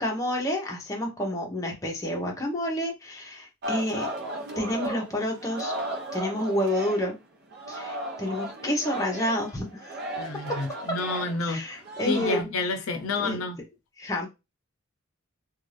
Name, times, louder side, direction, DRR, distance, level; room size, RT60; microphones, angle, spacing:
voice 1, 0.0-4.1 4.6-5.7 6.1-7.2 7.7-10.0 11.5-12.4 13.2-13.4 14.0-14.3, left 1 dB, 15° left, 0.8 m, -29 dB
Singing, 3.6-7.2 7.5-12.4, right 1 dB, 50° right, 0.6 m, -35 dB
voice 2, 10.2-11.7 12.0-13.6, left 3 dB, 70° left, 0.6 m, -30 dB
2.6 x 2.3 x 3.2 m
head